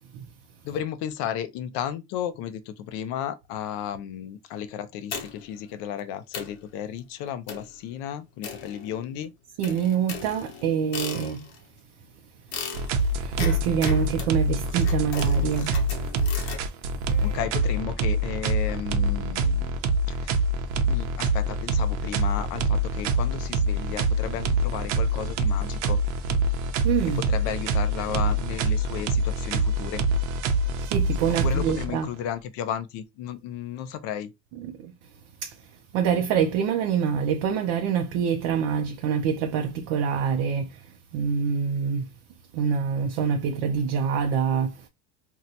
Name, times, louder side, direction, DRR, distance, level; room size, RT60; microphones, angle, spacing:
voice 1, 0.6-9.3 17.2-19.8 20.1-20.3 20.9-26.0 27.2-30.0 31.4-34.3, left 9 dB, 45° left, 0.5 m, -34 dB
sound 1, 5.1-5.6 6.0-6.1 6.3-6.6 7.5-7.8 8.4-9.2 9.6-11.6 12.5-16.6, left 6 dB, 65° left, 1.0 m, -37 dB
voice 2, 9.6-11.5 13.2-15.8 17.2-17.4 26.8-27.2 30.8-32.1 34.5-34.9 35.4-35.6 35.9-40.9 41.1-42.1 42.5-44.9, right 7 dB, 45° right, 0.4 m, -26 dB
sound 2, 12.7-32.2, right 2 dB, 75° right, 0.7 m, -25 dB
2.8 x 2.2 x 3.9 m
cardioid pair, 175°, 34 cm